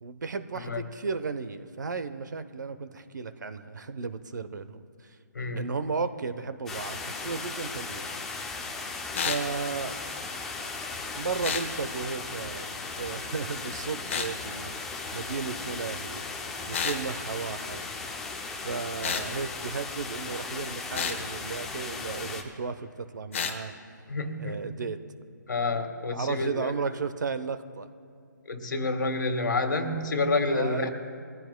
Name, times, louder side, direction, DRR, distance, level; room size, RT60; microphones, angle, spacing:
voice 1, 0.0-5.2 5.5-8.1 9.2-10.0 11.2-12.7 12.9-16.2 16.7-17.8 18.6-23.7 24.4-25.0 26.1-27.9 30.5-30.9, right 5 dB, 65° right, 11 dB, 0.9 m, -34 dB
voice 2, 5.3-5.7 24.1-24.7 25.5-26.7 28.5-30.9, left 3 dB, 75° left, 6 dB, 1.7 m, -28 dB
sound 1, 6.7-22.4, left 4 dB, 5° left, 0.4 m, -37 dB
sound 2, 9.1-9.4 11.4-11.7 14.1-14.3 16.7-17.0 19.0-19.3 20.9-21.2 23.3-23.6, left 6 dB, 40° left, 1.1 m, -30 dB
22.0 x 15.0 x 2.3 m, 2.4 s
hypercardioid pair, 165°, 10 cm